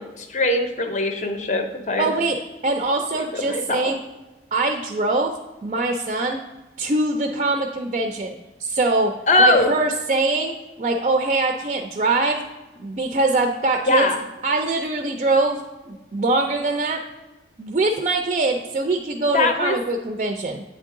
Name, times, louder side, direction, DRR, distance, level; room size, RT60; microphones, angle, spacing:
voice 1, 0.0-2.1 3.3-3.9 9.3-9.7 13.8-14.2 19.3-19.8, left 2 dB, 40° left, 6 dB, 0.6 m, -21 dB
voice 2, 2.0-2.4 2.6-4.0 4.5-5.3 5.6-6.4 6.8-9.1 9.4-12.4 12.8-14.1 14.4-17.0 17.6-20.6, right 2 dB, 35° right, 4 dB, 0.4 m, -23 dB
8.4 x 3.7 x 3.6 m, 1.1 s
head